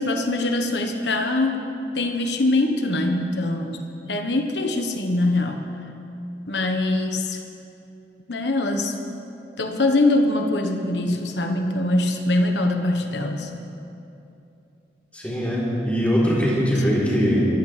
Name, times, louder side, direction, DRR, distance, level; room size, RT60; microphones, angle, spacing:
voice 1, 0.0-1.6 1.9-5.7 6.5-7.4 8.3-8.9 9.6-13.5, left 2 dB, 75° left, 4 dB, 1.2 m, -23 dB
voice 2, 15.1-17.5, equal, 10° left, -7 dB, 3.7 m, -21 dB
22.5 x 15.0 x 3.4 m, 2.7 s
head